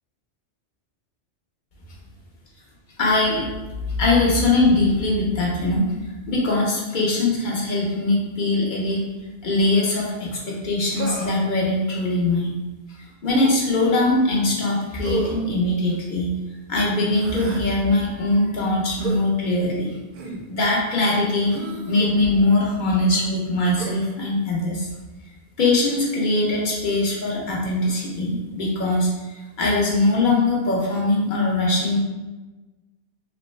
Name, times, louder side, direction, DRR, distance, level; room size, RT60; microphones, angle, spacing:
voice 1, 3.0-3.5 3.9-5.9 6.3-9.0 9.4-12.5 12.9-16.3 16.7-19.9 20.5-21.5 21.9-24.9 25.6-32.0, left 2 dB, 50° left, -3 dB, 0.8 m, -21 dB
Human voice, 11.0-11.5 13.3-13.5 15.0-15.4 17.1-17.7 19.0-19.2 20.1-20.4 21.5-22.1 23.8-24.0, right 3 dB, 60° right, 0.6 m, -30 dB
3.3 x 2.1 x 3.1 m, 1.2 s
omnidirectional pair, 1.2 m